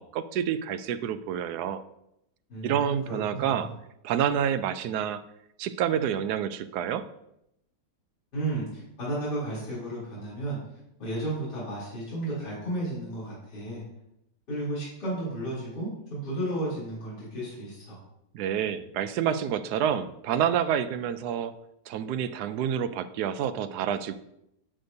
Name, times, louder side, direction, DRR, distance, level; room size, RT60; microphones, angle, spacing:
voice 1, 0.0-1.8 2.6-3.7 4.0-5.2 5.6-7.1 18.3-21.5 21.9-24.2, right 9 dB, 75° right, 12 dB, 1.0 m, -28 dB
voice 2, 2.5-3.7 8.3-10.6 11.0-13.8 14.5-18.0, right 1 dB, 70° left, -10 dB, 4.0 m, -33 dB
11.5 x 6.6 x 2.7 m, 0.81 s
omnidirectional pair, 1.9 m